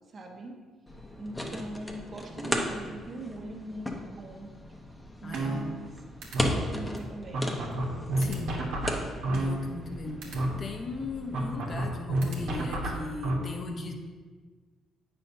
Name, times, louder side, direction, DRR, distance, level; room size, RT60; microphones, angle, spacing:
voice 1, 0.1-0.6 1.2-4.5 5.2-5.9 6.4-7.5, right 1 dB, 45° right, 1 dB, 1.1 m, -41 dB
sound 1, 0.9-11.8, left 1 dB, 15° left, 0.9 m, -37 dB
voice 2, 5.2-5.8 8.2-8.6 9.3-13.9, left 2 dB, 45° left, 4 dB, 0.9 m, -38 dB
sound 2, 5.3-5.9 6.2-6.5 7.0-7.1 7.3-9.9 10.2-10.5 11.3-13.3, right 1 dB, 80° right, 1.3 m, -29 dB
8.3 x 5.7 x 2.7 m, 1.4 s
supercardioid pair, 75°, 0 cm